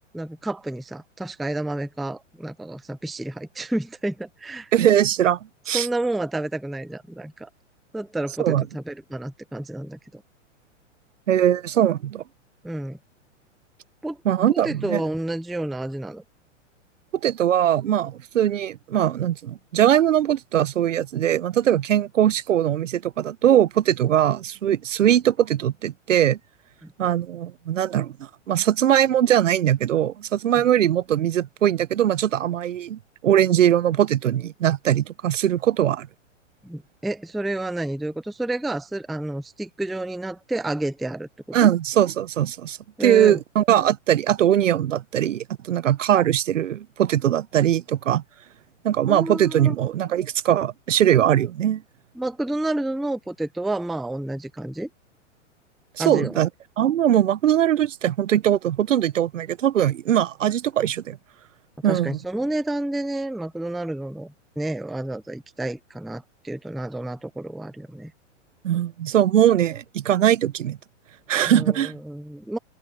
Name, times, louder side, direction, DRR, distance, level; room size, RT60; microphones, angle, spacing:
voice 1, 0.1-4.7 5.7-7.5 7.9-10.2 12.6-13.0 14.0-14.2 14.5-16.2 26.8-26.9 36.6-41.6 43.0-43.4 49.1-49.8 52.2-54.9 56.0-56.4 61.9-68.1 71.5-72.6, right 1 dB, ahead, 0.3 m, -30 dB
voice 2, 4.7-5.4 5.7-5.9 8.4-8.6 11.3-12.2 14.2-15.0 17.2-26.4 27.0-28.1 28.5-36.1 41.5-48.2 48.8-51.8 56.0-56.5 56.8-61.2 61.8-62.2 68.6-70.8 71.3-71.9, right 11 dB, 80° right, 1.0 m, -21 dB
open air
hypercardioid pair, 120°, 37 cm